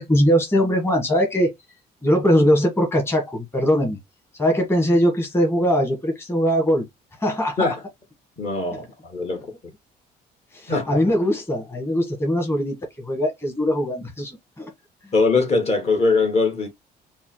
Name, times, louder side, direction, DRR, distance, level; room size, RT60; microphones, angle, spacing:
voice 1, 0.0-1.5 2.0-4.0 4.4-6.8 7.2-7.6 10.5-14.7, equal, 15° left, 1.4 m, -21 dB
voice 2, 8.4-9.5 10.7-11.1 15.1-16.7, left 3 dB, 40° left, 1.6 m, -21 dB
5.2 x 2.2 x 3.1 m
cardioid pair, 110°, 17 cm